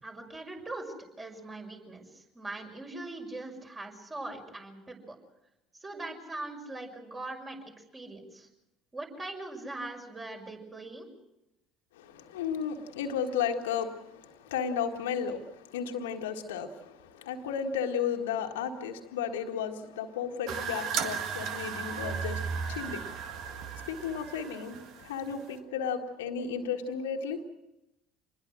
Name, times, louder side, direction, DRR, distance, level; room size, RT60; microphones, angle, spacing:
voice 1, 0.0-5.2 5.8-8.5 8.9-11.1, right 2 dB, 25° right, 6.1 m, -41 dB
voice 2, 11.9-27.4, left 7 dB, 75° left, 1.7 m, -34 dB
sound 1, 20.5-25.6, right 6 dB, 55° right, 1.8 m, -36 dB
26.5 x 21.0 x 6.3 m
figure-of-eight pair, 65°, 0 cm